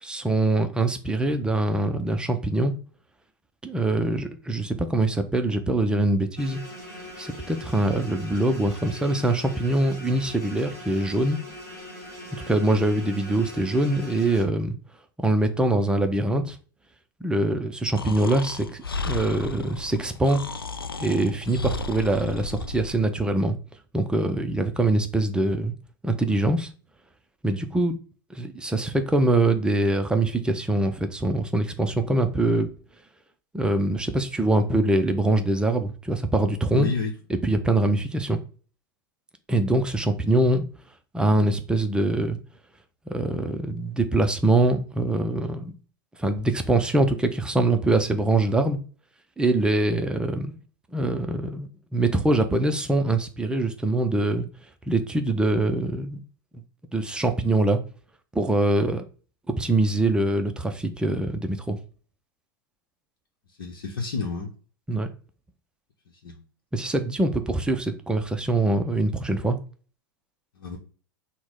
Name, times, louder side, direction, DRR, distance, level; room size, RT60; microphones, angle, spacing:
voice 1, 0.0-2.7 3.6-6.6 7.2-11.4 12.5-14.7 15.2-16.6 17.2-20.4 21.0-23.6 23.9-25.7 26.0-26.7 27.4-28.0 28.3-32.7 33.5-36.9 37.3-38.4 39.5-40.6 41.1-42.4 43.1-45.7 46.2-48.8 49.4-50.6 50.9-54.5 54.9-56.2 56.9-57.8 58.3-59.0 59.5-61.8 64.9-65.1 66.7-69.6, right 2 dB, 5° right, 0.5 m, -23 dB
sound 1, 6.4-14.4, left 1 dB, 25° left, 1.9 m, -41 dB
Breathing, 17.9-23.1, left 3 dB, 90° left, 0.4 m, -33 dB
voice 2, 36.7-37.1 63.6-64.5 66.2-66.4 70.6-70.8, left 4 dB, 65° left, 0.9 m, -29 dB
6.0 x 2.2 x 3.6 m
figure-of-eight pair, 90°, 12 cm